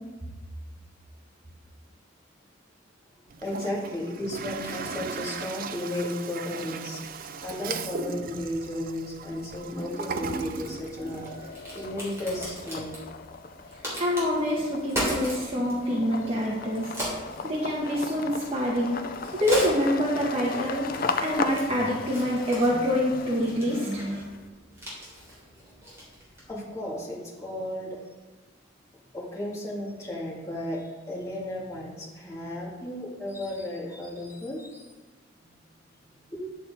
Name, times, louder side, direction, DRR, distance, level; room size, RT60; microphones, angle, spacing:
Toilet flush, 3.3-11.5, right 5 dB, 45° right, 0.5 m, -37 dB
voice 1, 3.4-7.0 7.4-13.0 26.5-28.0 29.1-34.8 35.4-35.5 36.3-36.4, left 1 dB, 15° left, -5 dB, 2.1 m, -34 dB
sound 1, 9.8-10.5 10.9-24.4, left 4 dB, 45° left, 0.5 m, -36 dB
Crack, 11.1-26.6, equal, 15° right, 3.3 m, -39 dB
voice 2, 14.0-16.9 17.4-19.0 19.3-20.9 21.2-24.2, equal, 30° right, -5 dB, 1.2 m, -26 dB
10.5 x 6.5 x 4.2 m, 1.3 s
head